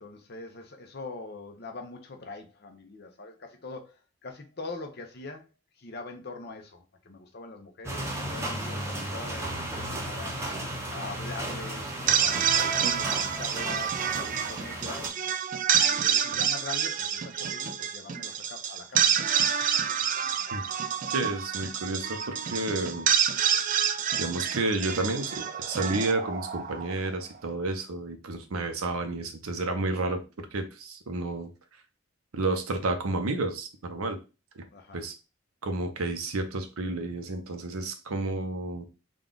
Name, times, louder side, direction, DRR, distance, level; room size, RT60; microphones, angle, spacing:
voice 1, 0.0-5.5 5.7-15.2 15.8-20.1 20.6-20.8 22.3-22.4 34.7-35.0, left 3 dB, 50° left, 0.7 m, -43 dB
sound 1, 7.8-15.1, right 1 dB, 15° right, 0.7 m, -35 dB
sound 2, 11.9-27.1, right 8 dB, 35° right, 0.3 m, -28 dB
voice 2, 21.1-23.1 24.2-31.5 32.3-34.2 34.6-34.7 34.9-35.1 35.6-38.8, right 2 dB, 90° right, 0.7 m, -31 dB
3.7 x 2.3 x 3.7 m
head